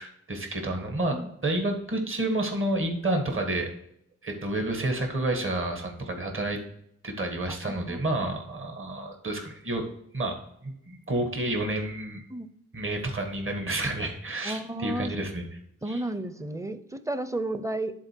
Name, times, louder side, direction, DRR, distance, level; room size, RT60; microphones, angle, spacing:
voice 1, 0.0-3.8 4.2-6.6 7.0-9.8 10.1-12.2 12.7-15.4 15.9-16.0, right 1 dB, 45° right, 3 dB, 1.6 m, -30 dB
voice 2, 7.6-8.0 12.3-12.5 14.4-15.2 15.8-17.9, right 1 dB, 10° right, 11 dB, 0.6 m, -32 dB
10.5 x 4.2 x 4.5 m, 0.73 s
wide cardioid pair, 80°, 30 cm